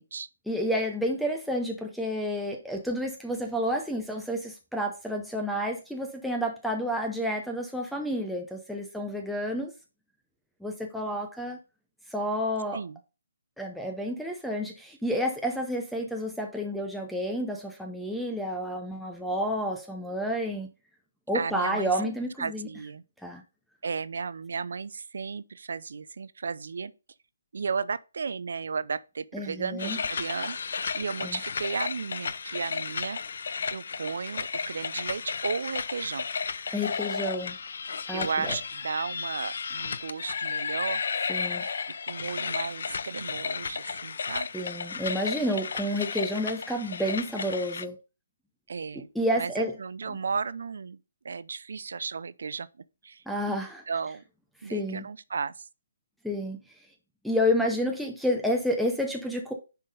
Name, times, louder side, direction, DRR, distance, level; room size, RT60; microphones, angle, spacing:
voice 1, 0.5-9.7 10.6-11.6 12.1-12.8 13.6-20.7 21.3-22.7 23.2-23.4 29.3-30.0 31.2-31.4 36.7-37.6 38.1-38.6 41.3-41.6 44.5-48.0 49.1-49.7 50.1-50.2 53.3-53.8 54.6-55.1 56.2-56.6 57.2-59.5, equal, ahead, 0.7 m, -30 dB
voice 2, 21.3-22.1 22.4-23.0 23.8-26.9 27.5-33.2 33.7-36.3 38.1-41.0 41.6-44.5 48.7-49.1 49.4-49.5 49.8-51.0 51.2-52.7 53.0-54.2 54.6-55.7, right 5 dB, 65° right, 0.5 m, -34 dB
sound 1, 29.8-47.9, left 5 dB, 60° left, 0.5 m, -33 dB
10.0 x 3.7 x 3.9 m
figure-of-eight pair, 145°, 0 cm